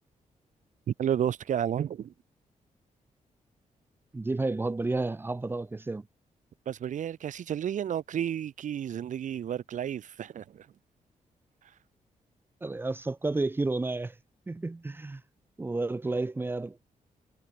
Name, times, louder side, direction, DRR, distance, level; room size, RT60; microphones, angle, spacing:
voice 1, 0.9-2.1 6.7-10.7, right 9 dB, 70° right, 3.0 m, -31 dB
voice 2, 4.1-6.0 12.6-14.1 14.5-15.2 15.6-16.8, right 2 dB, 15° right, 1.5 m, -31 dB
wide cardioid pair, 165°, 13 cm